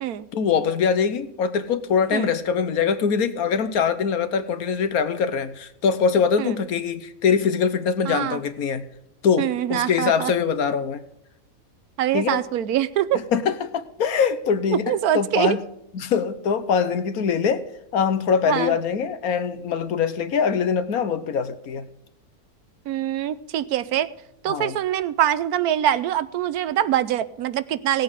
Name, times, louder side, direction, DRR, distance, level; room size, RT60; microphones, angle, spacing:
voice 1, 0.3-8.9 9.2-11.0 12.1-12.4 13.3-14.8 15.1-15.6 15.9-17.6 17.9-21.9 24.5-24.7, left 6 dB, 70° left, 1.4 m, -23 dB
voice 2, 8.0-8.4 9.4-10.3 12.0-13.2 14.7-15.6 18.5-18.7 22.9-24.1 24.4-28.0, right 11 dB, 80° right, 1.2 m, -24 dB
17.0 x 8.3 x 5.0 m
omnidirectional pair, 1.6 m